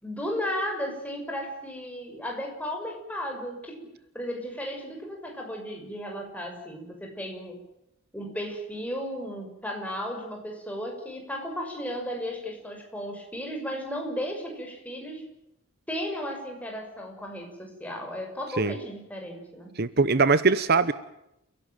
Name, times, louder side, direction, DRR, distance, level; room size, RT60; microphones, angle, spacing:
voice 1, 0.0-3.9 4.1-7.6 8.1-15.2 15.9-19.7, equal, 5° left, 1 dB, 6.4 m, -34 dB
voice 2, 19.8-20.9, right 4 dB, 45° right, 14 dB, 0.9 m, -21 dB
30.0 x 17.0 x 9.2 m, 0.85 s
head